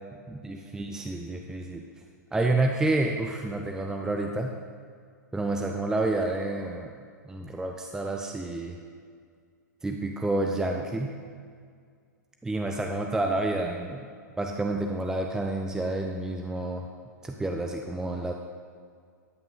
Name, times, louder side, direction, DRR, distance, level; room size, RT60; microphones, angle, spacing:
voice 1, 0.3-1.8 2.3-4.5 5.3-6.9 7.2-8.8 9.8-11.2 12.4-14.1 14.4-16.9 17.2-18.3, right 2 dB, 5° right, 2 dB, 0.6 m, -29 dB
13.5 x 9.1 x 3.9 m, 2.1 s
figure-of-eight pair, 100°, 10 cm